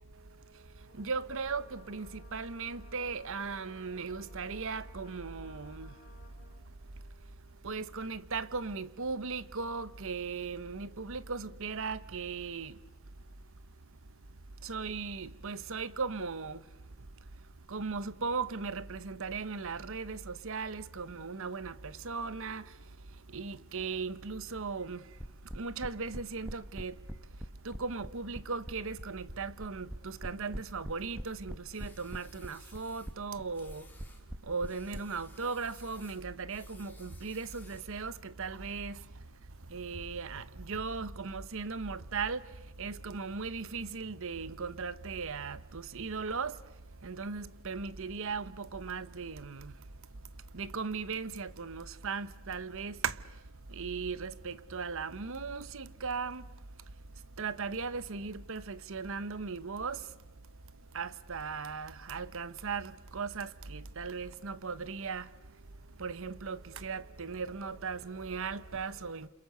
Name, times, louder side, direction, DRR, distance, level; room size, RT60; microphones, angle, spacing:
Brass instrument, 0.9-6.7, left 2 dB, 40° left, 3.5 m, -60 dB
voice 1, 0.9-5.9 7.6-12.8 14.6-16.6 17.7-22.7 23.3-25.0 25.5-27.0 27.6-33.9 34.4-39.0 39.7-42.4 42.8-46.6 47.0-49.7 50.5-53.2 53.7-56.4 57.4-60.0 60.9-65.3 66.0-69.3, right 4 dB, 65° right, 1.0 m, -37 dB
sound 1, 25.2-35.0, equal, 5° right, 0.9 m, -42 dB
sound 2, 31.7-33.2 33.5-34.3 34.6-38.0, left 3 dB, 10° left, 3.5 m, -59 dB
29.0 x 27.0 x 6.9 m
head